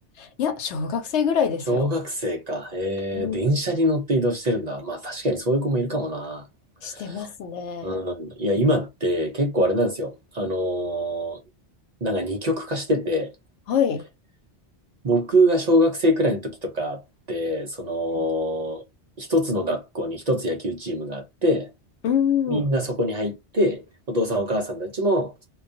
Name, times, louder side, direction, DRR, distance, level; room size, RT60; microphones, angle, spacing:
voice 1, 0.2-1.9 3.1-3.5 6.8-8.0 13.7-14.0 18.2-18.3 22.0-22.7, left 8 dB, 85° left, 0.9 m, -25 dB
voice 2, 1.7-6.4 6.8-7.2 7.8-11.4 12.0-13.3 15.0-17.0 17.3-18.8 19.2-21.7 22.5-25.4, equal, 50° right, 0.5 m, -24 dB
2.3 x 2.2 x 2.5 m
omnidirectional pair, 1.1 m